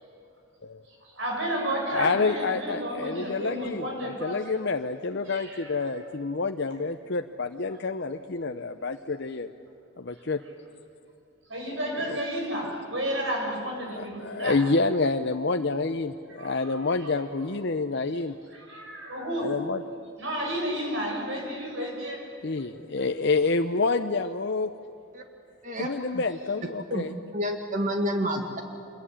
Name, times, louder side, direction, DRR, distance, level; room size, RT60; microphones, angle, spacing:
voice 1, 1.0-4.6 5.3-5.7 11.5-14.6 16.3-16.7 18.5-19.5 20.2-22.2, equal, 60° right, 0 dB, 7.1 m, -32 dB
voice 2, 1.9-9.5 10.0-10.4 12.1-12.2 14.0-18.4 19.4-19.8 22.4-24.7 25.8-27.1, left 3 dB, 50° left, 6 dB, 0.7 m, -28 dB
voice 3, 27.3-28.6, equal, 35° right, 4 dB, 1.9 m, -28 dB
26.0 x 22.0 x 10.0 m, 2.6 s
head